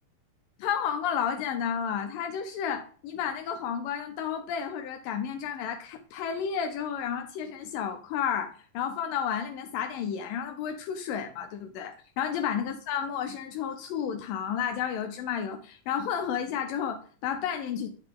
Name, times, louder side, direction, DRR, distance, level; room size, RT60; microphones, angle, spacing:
voice 1, 0.6-17.9, left 8 dB, 80° left, 6 dB, 2.3 m, -32 dB
8.6 x 5.8 x 3.7 m, 0.43 s
omnidirectional pair, 4.0 m